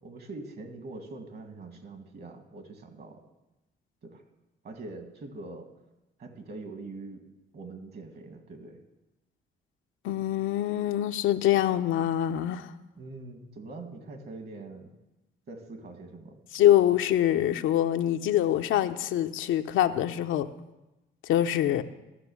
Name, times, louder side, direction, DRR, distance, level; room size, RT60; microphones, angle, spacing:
voice 1, 0.0-3.2 4.0-4.2 4.6-5.7 6.2-7.2 7.5-8.8 13.0-14.9 15.5-16.4, right 3 dB, 55° right, 6 dB, 1.9 m, -43 dB
voice 2, 10.0-12.7 16.5-20.5 21.2-21.8, left 12 dB, 85° left, 8 dB, 0.7 m, -24 dB
14.0 x 6.1 x 7.1 m, 1.0 s
cardioid pair, 90°, 20 cm